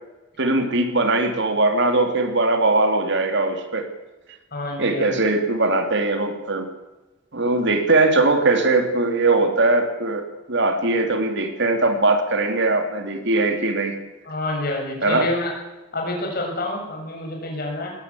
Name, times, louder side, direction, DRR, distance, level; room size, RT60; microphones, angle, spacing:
voice 1, 0.4-3.9 4.8-6.7 7.3-14.0 15.0-15.3, right 2 dB, 60° right, 6 dB, 2.8 m, -20 dB
voice 2, 4.5-5.2 14.2-15.5 15.9-17.9, left 1 dB, 50° left, 1 dB, 7.0 m, -28 dB
20.0 x 17.5 x 8.4 m, 1.1 s
head